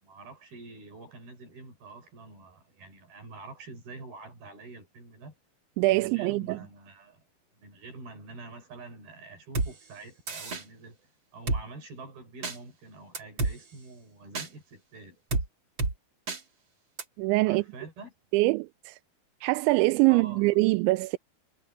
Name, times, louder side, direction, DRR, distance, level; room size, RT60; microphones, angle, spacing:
voice 1, 0.0-5.3 5.9-7.2 7.5-11.1 11.3-15.2 17.5-18.1 20.1-20.5, right 3 dB, 50° right, 7.6 m, -46 dB
voice 2, 5.8-6.6 17.2-17.6 18.3-19.0 19.4-21.2, right 22 dB, 80° right, 2.8 m, -24 dB
Drum kit, 9.5-9.7 10.3-10.6 11.5-11.6 12.4-12.6 13.1-13.5 14.3-14.5 15.3-15.5 15.8-15.9 16.3-16.4 17.0-17.1, right 3 dB, 35° right, 2.3 m, -28 dB
omnidirectional pair, 5.6 m